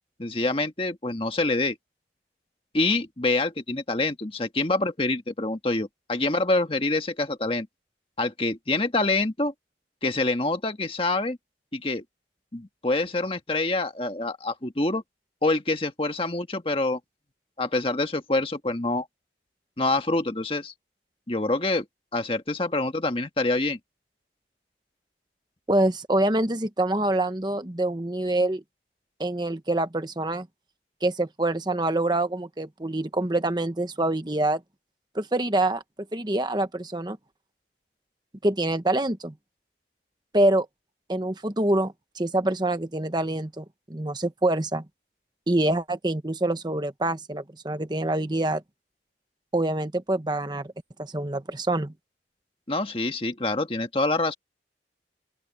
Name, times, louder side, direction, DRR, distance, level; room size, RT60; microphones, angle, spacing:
voice 1, 0.2-1.8 2.7-7.7 8.2-9.5 10.0-11.4 11.7-12.0 12.5-15.0 15.4-17.0 17.6-19.1 19.8-20.7 21.3-21.8 22.1-23.8 52.7-54.3, left 2 dB, 30° left, 1.5 m, -26 dB
voice 2, 25.7-28.6 29.2-30.5 31.0-34.6 35.1-35.8 36.1-37.2 38.4-39.3 40.3-40.7 41.1-43.6 43.9-44.8 45.5-48.6 49.5-50.7 51.0-51.9, right 1 dB, 25° right, 1.0 m, -25 dB
open air
head